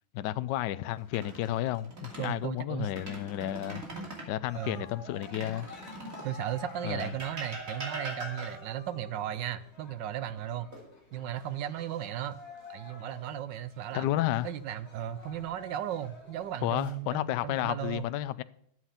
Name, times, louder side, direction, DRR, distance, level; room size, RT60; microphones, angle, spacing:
voice 1, 0.1-3.8 4.3-5.7 6.8-7.1 13.9-14.5 16.6-18.4, left 14 dB, 75° left, 1.0 m, -32 dB
sound 1, 1.0-2.4 2.8-4.3 5.2-6.4 7.0-8.8 10.7-11.4 11.8-12.0 14.9-15.5 16.3-16.9, right 2 dB, 40° right, 3.0 m, -42 dB
voice 2, 2.2-2.9 4.5-4.8 6.2-10.7 11.1-12.4 12.7-14.1 14.4-18.1, right 11 dB, 70° right, 1.2 m, -36 dB
Cheering, 4.5-16.9, left 2 dB, 45° left, 2.7 m, -51 dB
12.5 x 7.6 x 5.7 m
omnidirectional pair, 2.3 m